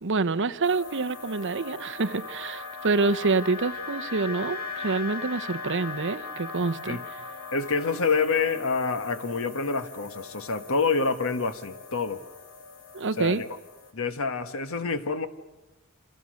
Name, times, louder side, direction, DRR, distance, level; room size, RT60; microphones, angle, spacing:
voice 1, 0.0-7.2 12.9-13.4, right 3 dB, 55° right, 0.9 m, -27 dB
sound 1, 0.6-13.9, left 4 dB, 80° left, 2.5 m, -40 dB
voice 2, 7.5-12.2 13.2-13.5 13.9-15.3, left 4 dB, 65° left, 1.3 m, -27 dB
29.0 x 26.0 x 6.4 m
head